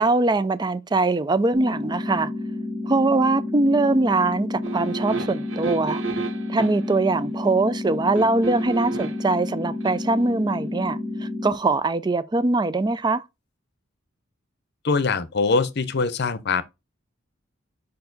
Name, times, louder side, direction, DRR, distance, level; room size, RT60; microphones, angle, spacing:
voice 1, 0.0-2.3 2.9-6.0 6.5-13.2, right 2 dB, 20° right, 0.4 m, -22 dB
sound 1, 1.5-11.5, left 2 dB, 25° left, 1.1 m, -31 dB
sound 2, 4.6-7.0 8.2-9.3 9.8-10.0, right 4 dB, 85° right, 1.1 m, -32 dB
voice 2, 14.8-16.6, left 4 dB, 55° left, 0.7 m, -23 dB
5.2 x 4.6 x 3.9 m
head